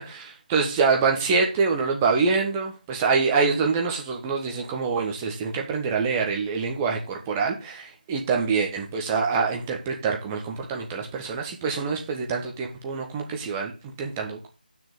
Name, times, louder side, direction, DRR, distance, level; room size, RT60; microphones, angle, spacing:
voice 1, 0.0-14.5, right 5 dB, 15° right, 1 dB, 1.5 m, -25 dB
7.4 x 6.1 x 7.2 m, 0.32 s
figure-of-eight pair, 160°, 5 cm